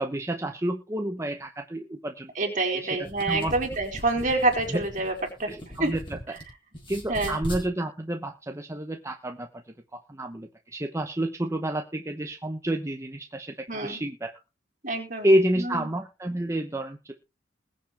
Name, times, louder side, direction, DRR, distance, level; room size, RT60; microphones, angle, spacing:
voice 1, 0.0-2.3 2.7-2.9 3.3-3.5 4.7-4.8 5.5-6.2 6.9-9.6 9.9-14.3 15.2-17.1, right 1 dB, 15° right, 4 dB, 0.9 m, -29 dB
voice 2, 2.4-5.1 5.4-5.5 5.8-5.9 7.1-7.4 13.7-14.0 14.8-15.9, right 2 dB, 45° right, 2 dB, 4.2 m, -27 dB
sound 1, 2.9-6.4 6.7-7.7, equal, 25° left, 5.8 m, -38 dB
21.0 x 7.6 x 3.4 m, 0.29 s
head